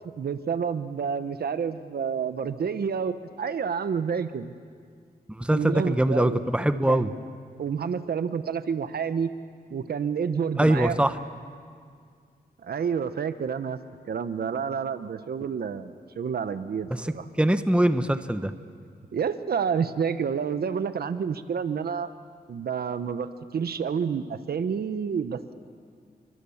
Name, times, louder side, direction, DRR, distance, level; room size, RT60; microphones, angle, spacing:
voice 1, 0.2-4.5 5.5-6.4 6.9-7.1 7.6-9.3 9.7-11.0 12.6-13.8 14.1-17.3 19.1-22.1 22.5-25.5, right 6 dB, 70° right, 11 dB, 1.1 m, -29 dB
voice 2, 5.3-7.1 10.6-11.2 17.0-18.5, right 1 dB, 5° right, 10 dB, 1.2 m, -23 dB
29.5 x 24.0 x 7.3 m, 2.1 s
cardioid pair, 90°, 16 cm